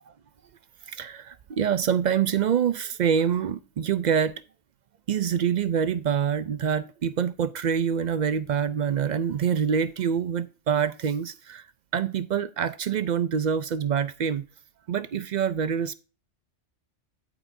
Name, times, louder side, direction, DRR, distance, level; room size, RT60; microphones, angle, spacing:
voice 1, 0.9-4.3 5.1-11.6 11.9-14.4 14.9-15.9, right 8 dB, 60° right, 0.4 m, -26 dB
14.5 x 4.9 x 2.6 m
omnidirectional pair, 1.2 m